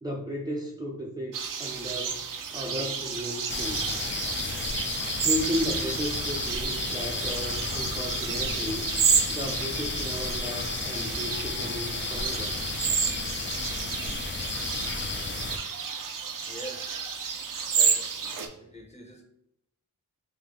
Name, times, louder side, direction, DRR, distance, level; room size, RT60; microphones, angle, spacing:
voice 1, 0.0-2.2 2.5-4.0 5.2-8.9 9.3-12.5, equal, 10° right, -2 dB, 0.5 m, -34 dB
sound 1, 1.3-18.5, right 6 dB, 70° right, 0.6 m, -31 dB
sound 2, 3.5-15.6, left 3 dB, 35° left, 0.5 m, -33 dB
voice 2, 16.4-17.0 17.7-19.2, right 1 dB, 20° left, 2 dB, 0.9 m, -44 dB
3.4 x 2.8 x 3.8 m, 0.78 s
cardioid pair, 60°, 33 cm